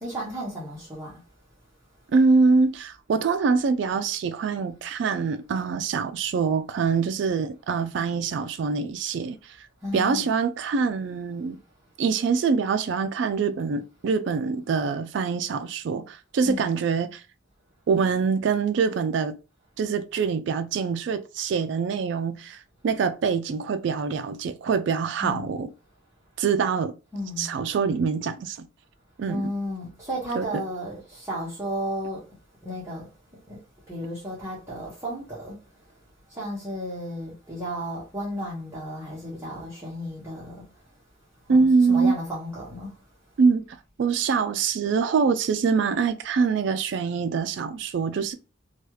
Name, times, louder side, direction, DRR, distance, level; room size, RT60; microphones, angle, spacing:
voice 1, 0.0-1.2 9.8-10.2 16.4-16.7 25.2-25.6 27.1-27.5 29.3-32.2 32.6-33.1 33.5-33.6 33.9-35.7 36.3-40.6 41.5-42.9, equal, 15° right, 1.0 m, -33 dB
voice 2, 2.1-9.7 9.9-11.6 12.0-17.2 17.9-19.4 19.8-25.7 26.4-26.9 27.4-28.7 29.2-29.5 30.3-30.6 41.5-42.2 43.4-48.3, right 5 dB, 60° right, 0.3 m, -24 dB
3.1 x 2.3 x 3.1 m
head